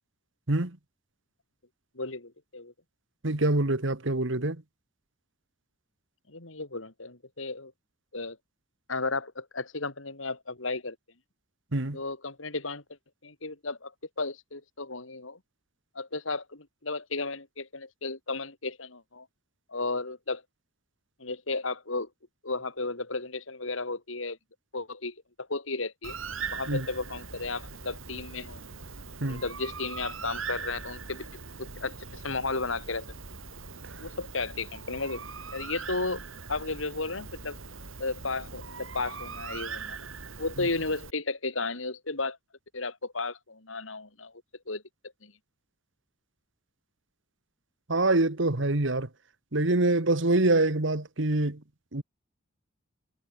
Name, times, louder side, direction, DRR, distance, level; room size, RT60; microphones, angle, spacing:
voice 1, 2.0-2.7 6.3-7.7 8.1-8.4 8.9-11.0 11.9-12.8 13.2-13.9 14.2-15.4 16.0-19.3 19.7-20.4 21.2-22.1 22.4-24.4 24.7-25.2 25.5-26.2 26.5-28.6 29.2-31.3 31.6-33.1 34.0-35.2 35.5-36.2 36.5-37.6 38.0-40.0 40.4-42.4 42.7-44.3 44.7-44.8 45.2-45.3, left 3 dB, 80° left, 3.5 m, -34 dB
voice 2, 3.2-4.6 11.7-12.0 26.7-26.9 29.2-29.4 47.9-49.1 49.5-51.6 51.9-52.0, right 2 dB, 65° right, 1.9 m, -25 dB
Bird, 26.0-41.1, right 5 dB, 90° right, 2.9 m, -41 dB
head